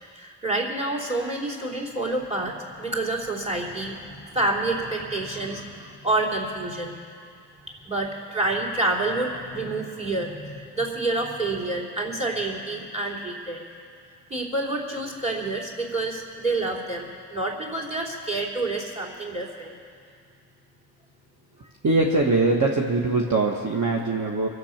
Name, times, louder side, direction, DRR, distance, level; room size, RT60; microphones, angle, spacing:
voice 1, 0.1-7.0 7.8-13.6 14.3-19.7, right 2 dB, 15° right, -1 dB, 3.3 m, -28 dB
voice 2, 21.8-24.5, right 3 dB, 45° right, -1 dB, 1.4 m, -22 dB
23.5 x 7.9 x 5.9 m, 2.3 s
cardioid pair, 65°, 40 cm